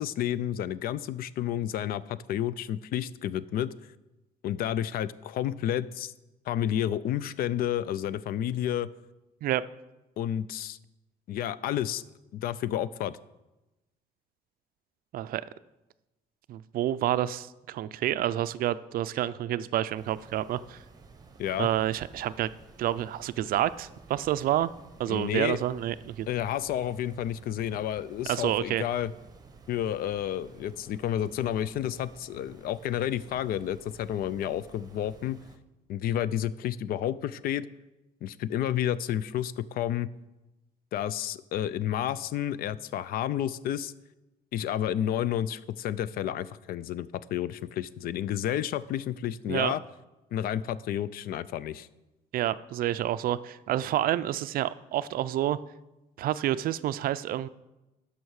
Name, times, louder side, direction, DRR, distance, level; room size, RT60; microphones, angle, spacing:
voice 1, 0.0-3.7 4.4-6.1 6.5-8.9 10.2-10.8 11.3-12.0 12.3-13.1 21.4-21.7 25.1-25.6 26.3-29.1 29.7-35.4 35.9-37.7 38.2-40.1 40.9-43.9 44.5-49.8 50.3-51.9, left 11 dB, 60° left, 17 dB, 0.4 m, -30 dB
voice 2, 16.5-20.8 21.6-22.5 22.8-24.7 25.0-26.3 28.3-28.8 49.5-49.7 52.3-55.6 56.2-57.5, right 12 dB, 60° right, 15 dB, 0.4 m, -28 dB
sound 1, 19.9-35.6, right 4 dB, 20° right, 0.9 m, -53 dB
12.0 x 5.7 x 4.7 m, 1.0 s
cardioid pair, 110°, 17 cm